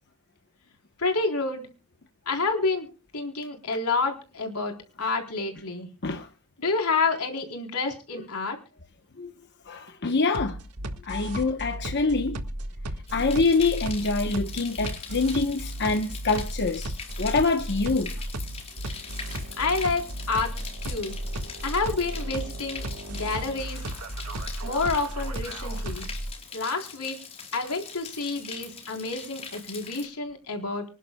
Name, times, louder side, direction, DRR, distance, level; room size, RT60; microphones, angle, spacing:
voice 1, 1.0-1.7 2.3-5.9 6.6-8.6 19.6-20.5 20.8-21.2 21.6-23.8 24.6-26.1 26.5-27.2 27.5-30.8, left 3 dB, 80° left, 4.0 m, -29 dB
voice 2, 9.7-10.6 11.0-12.4 13.1-16.9 17.2-18.1, left 3 dB, 50° left, 1.1 m, -25 dB
sound 1, 10.3-26.3, right 1 dB, 90° right, 1.7 m, -34 dB
sound 2, 13.1-30.1, left 5 dB, 30° left, 4.4 m, -42 dB
26.0 x 11.0 x 2.3 m
head